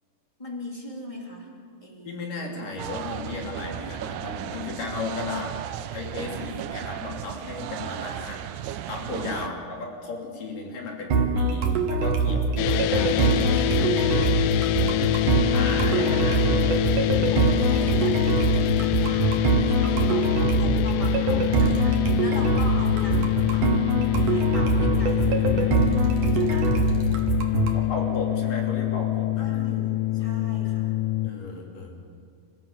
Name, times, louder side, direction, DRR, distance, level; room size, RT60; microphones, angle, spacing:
voice 1, 0.4-1.5 1.8-2.7 9.3-9.5 14.9-15.6 16.0-16.9 17.3-23.9 24.3-26.0 26.3-27.2 29.4-30.9, left 1 dB, 10° left, -2 dB, 2.6 m, -39 dB
voice 2, 2.0-8.4 8.9-14.0 15.5-16.4 27.7-29.5 31.2-32.0, left 3 dB, 60° left, 0 dB, 4.4 m, -35 dB
sound 1, 2.8-9.5, right 11 dB, 80° right, 1.9 m, -35 dB
sound 2, 11.1-27.8, right 4 dB, 60° right, 2.9 m, -23 dB
sound 3, 12.6-31.3, left 15 dB, 85° left, 1.8 m, -25 dB
26.5 x 15.0 x 7.1 m, 2.2 s
omnidirectional pair, 4.3 m